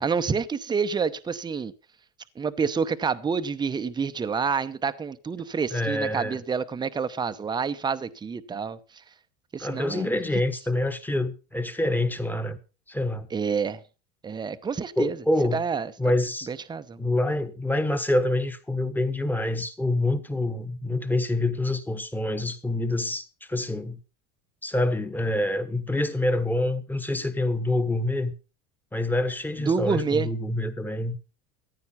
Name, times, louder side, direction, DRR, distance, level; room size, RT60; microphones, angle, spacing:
voice 1, 0.0-1.7 2.4-8.8 9.5-10.2 13.3-13.8 14.2-15.2 15.5-15.9 16.5-17.0 29.7-30.3, right 5 dB, 10° right, 0.8 m, -28 dB
voice 2, 5.7-6.4 9.6-12.6 12.9-13.3 15.0-15.6 16.0-16.5 17.0-24.0 24.6-28.3 28.9-31.2, left 1 dB, 5° left, 1.3 m, -26 dB
14.5 x 9.5 x 5.7 m
supercardioid pair, 140°, 35 cm